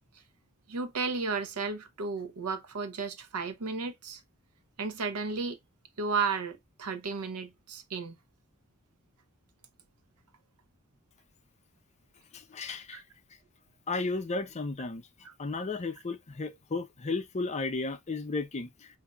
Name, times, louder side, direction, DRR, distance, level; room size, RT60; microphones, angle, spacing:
voice 1, 0.7-4.2 4.8-5.6 6.0-8.2 12.9-13.0, right 4 dB, 85° right, 0.7 m, -33 dB
voice 2, 12.3-13.0 13.9-15.0 15.4-18.9, left 3 dB, 30° left, 0.5 m, -34 dB
5.1 x 2.7 x 2.3 m
head